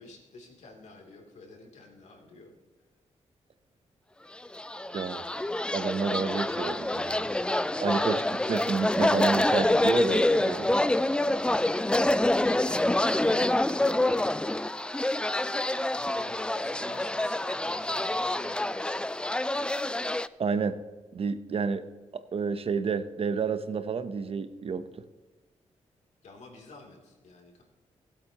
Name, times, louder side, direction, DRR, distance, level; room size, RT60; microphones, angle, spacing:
voice 1, 0.0-2.5 11.6-14.4 15.9-19.6 26.2-27.6, left 2 dB, 75° left, 0 dB, 2.9 m, -50 dB
sound 1, 4.4-20.3, left 1 dB, 10° left, 0.4 m, -27 dB
voice 2, 4.9-5.3 5.7-7.3 7.8-10.7 20.4-20.8 21.1-21.8 22.1-24.9, right 5 dB, 55° right, 12 dB, 0.8 m, -30 dB
19.0 x 8.3 x 2.9 m, 1.3 s
cardioid pair, 85°, 12 cm